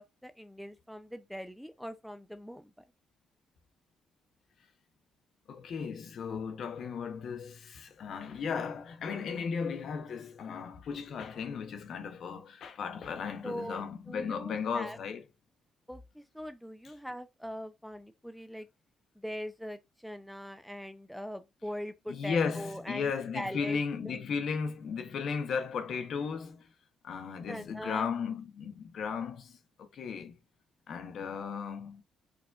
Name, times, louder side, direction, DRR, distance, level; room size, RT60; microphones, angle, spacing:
voice 1, 0.0-2.7 13.4-15.0 15.9-18.7 19.2-24.2 27.5-28.1, equal, ahead, 0.4 m, -42 dB
voice 2, 5.5-15.2 22.1-26.7 27.0-30.4 30.9-32.0, left 6 dB, 65° left, 0.7 m, -35 dB
4.7 x 2.3 x 2.2 m
cardioid pair, 90°, 0 cm